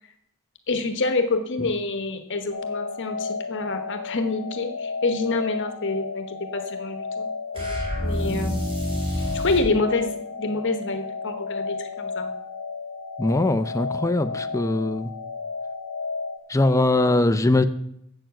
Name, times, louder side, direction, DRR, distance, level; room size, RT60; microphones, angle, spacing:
voice 1, 0.7-7.3 8.0-8.7 9.3-12.3, left 3 dB, 55° left, 7 dB, 1.0 m, -27 dB
sound 1, 2.5-16.4, left 4 dB, 85° left, 0.8 m, -33 dB
sound 2, 7.5-9.7, equal, 25° right, 3.2 m, -28 dB
voice 2, 13.2-15.1 16.5-17.6, left 2 dB, 15° left, 10 dB, 0.5 m, -21 dB
7.5 x 7.0 x 7.6 m, 0.76 s
head